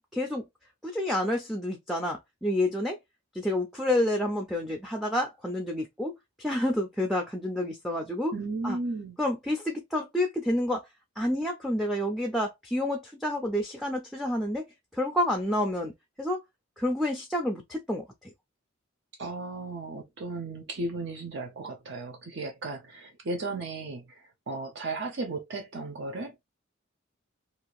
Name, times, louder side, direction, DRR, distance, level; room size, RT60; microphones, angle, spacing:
voice 1, 0.1-0.4 0.8-3.0 3.3-8.4 8.6-8.8 9.2-10.8 11.2-14.7 14.9-15.9 16.2-16.4 16.8-18.1, left 1 dB, ahead, 0.4 m, -29 dB
voice 2, 8.3-9.2 19.2-26.5, right 2 dB, 60° right, 0.6 m, -35 dB
2.7 x 2.4 x 2.9 m
head